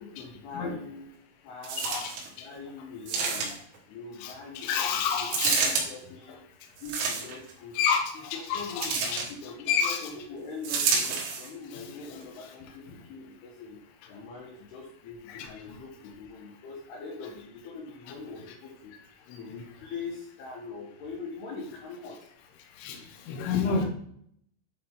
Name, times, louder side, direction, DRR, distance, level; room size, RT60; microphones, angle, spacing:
voice 1, 0.1-1.1 1.4-1.9 2.4-3.6 3.9-6.4 6.8-7.8 8.3-13.8 14.1-18.9 19.3-22.2 23.6-23.8, left 4 dB, 70° left, -2 dB, 2.7 m, -42 dB
sound 1, 1.6-2.3 3.1-3.8 5.3-5.9 6.8-7.5 8.8-9.3 10.6-11.5 12.2-12.3, right 5 dB, 70° right, 3.7 m, -28 dB
voice 2, 1.8-2.1 4.2-5.6 7.7-10.1 11.7-12.5 15.3-15.5 22.8-23.8, left 6 dB, 90° left, 2 dB, 1.9 m, -30 dB
10.0 x 4.3 x 3.6 m, 0.67 s
omnidirectional pair, 5.9 m